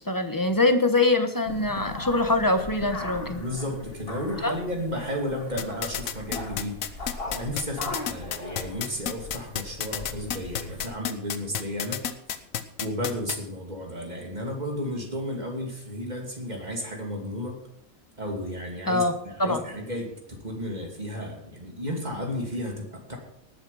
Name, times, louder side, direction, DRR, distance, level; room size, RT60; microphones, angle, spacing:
voice 1, 0.0-3.4 4.4-4.6 18.9-19.1 19.4-19.6, left 2 dB, 15° left, 7 dB, 1.0 m, -23 dB
sound 1, 1.5-10.9, left 2 dB, 40° left, 2.3 m, -38 dB
voice 2, 3.4-12.0 12.8-17.6 18.2-23.2, equal, 30° right, 1 dB, 2.9 m, -33 dB
sound 2, 5.6-13.4, left 9 dB, 70° left, 1.3 m, -30 dB
18.5 x 7.5 x 5.6 m, 0.78 s
omnidirectional pair, 1.5 m